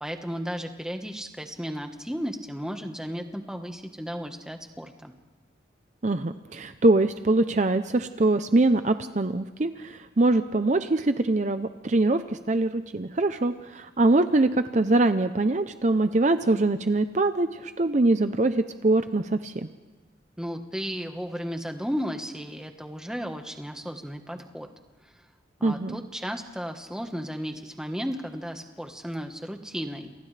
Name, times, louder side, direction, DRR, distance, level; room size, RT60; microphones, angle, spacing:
voice 1, 0.0-5.1 20.4-24.7 25.0-25.1 25.6-30.1, equal, 5° right, 5 dB, 1.3 m, -34 dB
voice 2, 6.0-12.2 12.5-19.7 25.6-26.0, right 2 dB, 40° right, 9 dB, 0.6 m, -23 dB
29.0 x 28.0 x 3.3 m, 1.3 s
head